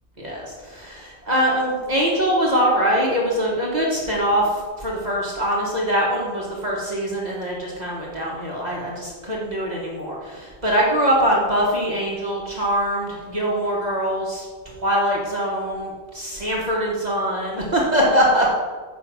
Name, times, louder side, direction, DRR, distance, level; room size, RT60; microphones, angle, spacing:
voice 1, 0.2-4.5 4.8-14.5 14.8-18.5, equal, 40° right, -4 dB, 1.5 m, -23 dB
7.0 x 5.2 x 6.0 m, 1.5 s
omnidirectional pair, 1.1 m